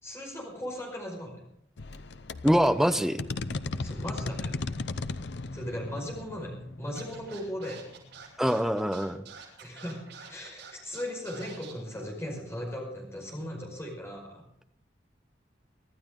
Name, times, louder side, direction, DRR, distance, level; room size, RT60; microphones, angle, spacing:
voice 1, 0.0-1.4 3.7-4.6 5.5-7.8 9.6-10.0 10.3-14.4, equal, 15° left, 0 dB, 5.2 m, -37 dB
sound 1, 1.8-8.2, left 3 dB, 80° left, 0.7 m, -37 dB
voice 2, 2.4-3.2 8.4-9.2, equal, ahead, 9 dB, 0.7 m, -24 dB
Scratching (performance technique), 6.9-11.7, right 6 dB, 85° right, 7.3 m, -47 dB
24.0 x 13.0 x 3.8 m, 0.75 s
head